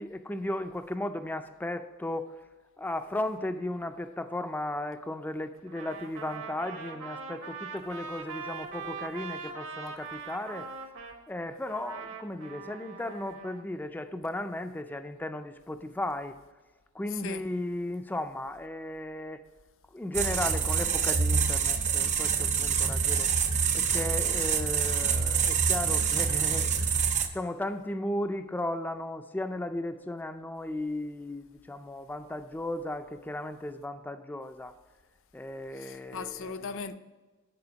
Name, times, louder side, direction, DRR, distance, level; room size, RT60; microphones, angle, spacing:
voice 1, 0.0-2.4 2.8-10.7 11.3-16.4 16.9-19.4 19.9-23.3 23.7-34.7 35.3-36.5, left 1 dB, 10° left, 0.3 m, -35 dB
Trumpet, 5.7-11.2 11.7-13.6, right 4 dB, 60° right, 1.0 m, -41 dB
voice 2, 17.1-17.4 35.7-36.9, left 5 dB, 60° left, 0.5 m, -38 dB
sound 1, 20.1-27.3, right 6 dB, 35° right, 0.6 m, -26 dB
9.7 x 4.2 x 5.1 m
head